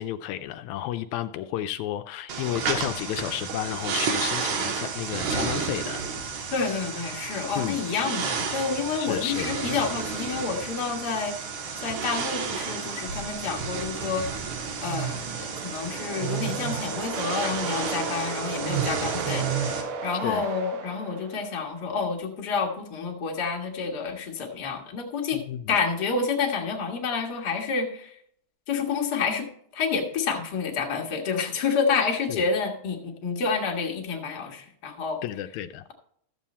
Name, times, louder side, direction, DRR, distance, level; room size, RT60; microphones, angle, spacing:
voice 1, 0.0-6.0 6.4-6.5 7.6-7.8 8.9-9.6 20.2-20.5 25.3-25.7 32.0-32.4 35.2-35.9, left 12 dB, 85° left, 9 dB, 1.9 m, -32 dB
sound 1, 2.3-19.8, right 6 dB, 80° right, 2.8 m, -31 dB
voice 2, 6.5-11.4 11.8-14.3 14.8-25.4 25.7-28.2 28.7-29.5 29.7-35.2, left 5 dB, 40° left, 2 dB, 1.8 m, -29 dB
sound 2, 14.8-21.8, right 5 dB, 65° right, 1.4 m, -35 dB
13.5 x 7.3 x 4.2 m, 0.65 s
omnidirectional pair, 3.3 m